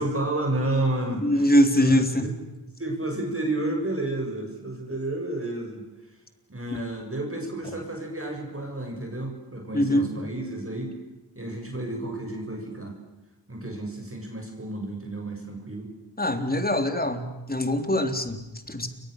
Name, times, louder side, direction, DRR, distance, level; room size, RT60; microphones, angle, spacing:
voice 1, 0.0-2.3 2.8-5.8 6.5-10.9 11.4-13.0 13.5-15.9, right 2 dB, 30° right, 2 dB, 7.3 m, -31 dB
voice 2, 1.2-2.3 9.7-10.1 16.2-18.9, equal, 20° left, 7 dB, 3.5 m, -23 dB
29.5 x 24.5 x 6.7 m, 1.0 s
wide cardioid pair, 70°, 43 cm